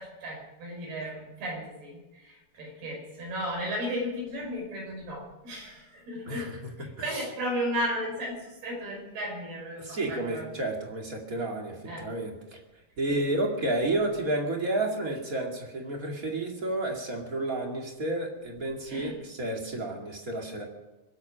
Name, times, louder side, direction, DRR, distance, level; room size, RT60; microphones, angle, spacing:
voice 1, 0.0-10.5 11.9-12.1 13.1-13.2 18.9-19.2, equal, 85° right, -1 dB, 7.4 m, -35 dB
voice 2, 6.3-7.2 9.8-12.6 13.0-20.6, right 2 dB, 30° right, 1 dB, 2.0 m, -31 dB
24.5 x 8.5 x 6.3 m, 1.1 s
omnidirectional pair, 4.4 m